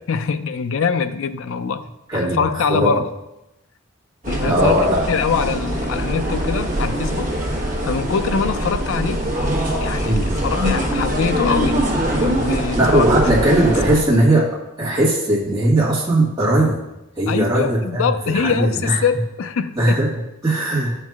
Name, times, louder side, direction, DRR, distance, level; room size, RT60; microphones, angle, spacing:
voice 1, 0.1-3.1 4.3-7.3 7.8-9.2 9.8-10.1 10.4-11.9 12.1-13.1 17.3-20.0, left 5 dB, 70° left, 11 dB, 0.4 m, -23 dB
voice 2, 2.1-2.9 4.4-5.0 10.0-10.3 12.7-14.5 14.8-16.8 17.2-19.0 19.7-21.0, right 1 dB, 15° right, -7 dB, 1.6 m, -18 dB
sound 1, 4.2-14.0, equal, 35° right, 1.3 m, -22 dB
11.5 x 4.6 x 2.4 m, 0.94 s
head